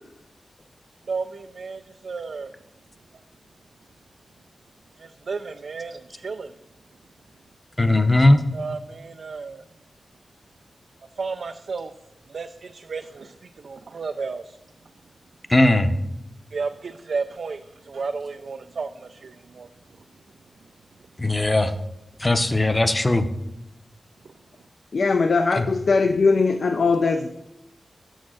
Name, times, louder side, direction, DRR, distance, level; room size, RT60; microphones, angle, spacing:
voice 1, 1.1-2.5 5.0-6.5 8.5-9.6 11.2-11.9 12.3-14.6 16.5-19.7, right 4 dB, 75° right, 8 dB, 0.3 m, -33 dB
voice 2, 7.8-8.4 15.5-15.9 21.2-21.7 22.2-23.3 25.5-25.6, left 1 dB, 20° left, 9 dB, 0.7 m, -18 dB
voice 3, 24.9-27.3, left 4 dB, 65° left, 7 dB, 0.4 m, -20 dB
7.2 x 6.3 x 6.3 m, 0.88 s
wide cardioid pair, 85°, 0 cm